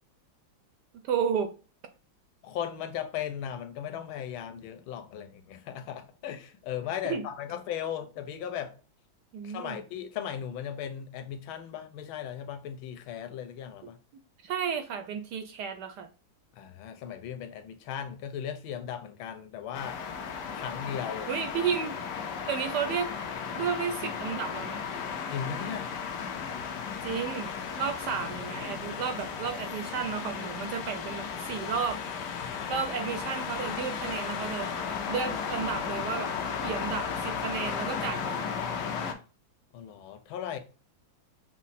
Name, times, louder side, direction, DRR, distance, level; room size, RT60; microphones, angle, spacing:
voice 1, 1.0-1.5 7.0-7.2 9.3-9.8 14.4-16.1 21.3-22.0 22.5-23.1 23.6-24.8 27.0-27.5 27.8-32.0 32.7-34.7 35.1-36.3 36.6-38.5, right 7 dB, 70° right, 1.0 m, -32 dB
voice 2, 2.4-8.8 9.4-14.0 16.6-20.0 20.5-21.3 25.3-25.9 32.4-32.6 39.7-40.6, left 9 dB, 90° left, 1.5 m, -37 dB
sound 1, 19.7-39.1, left 6 dB, 65° left, 1.2 m, -35 dB
6.1 x 2.1 x 4.1 m
omnidirectional pair, 2.2 m